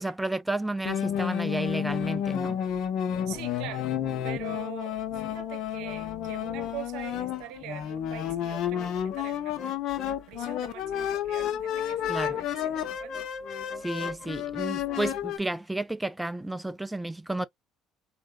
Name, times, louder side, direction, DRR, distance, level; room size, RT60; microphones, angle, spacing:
voice 1, 0.0-2.6 12.1-12.3 13.8-17.5, right 2 dB, 10° right, 0.4 m, -32 dB
sound 1, 0.9-15.4, left 9 dB, 65° left, 0.8 m, -31 dB
voice 2, 3.3-3.9 4.2-9.6 10.3-13.2, right 12 dB, 75° right, 0.8 m, -43 dB
4.5 x 2.5 x 2.3 m
supercardioid pair, 80°, 0 cm